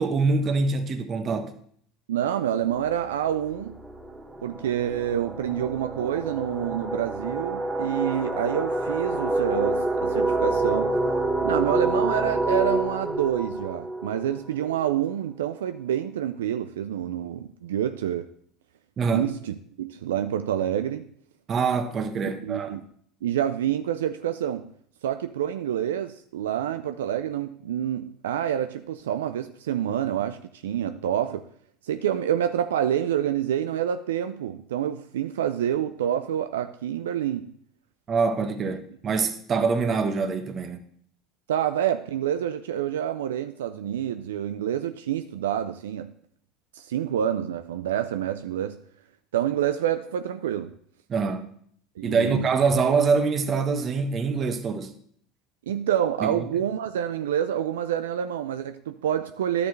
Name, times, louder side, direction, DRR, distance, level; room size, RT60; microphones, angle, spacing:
voice 1, 0.0-1.5 19.0-19.3 21.5-22.8 38.1-40.8 51.1-51.5 52.0-54.9 56.2-56.4, right 4 dB, 40° right, 1.0 m, -25 dB
voice 2, 2.1-3.8 4.4-11.0 11.4-18.3 19.1-21.1 22.2-22.8 23.2-24.7 25.0-31.5 31.8-37.5 41.5-46.1 46.7-48.8 49.3-50.7 52.0-52.5 55.7-59.7, right 10 dB, 85° right, 0.4 m, -27 dB
sound 1, 2.8-3.0 3.3-14.9, right 2 dB, 10° right, 2.0 m, -27 dB
11.0 x 6.8 x 3.2 m
hypercardioid pair, 80°, 0 cm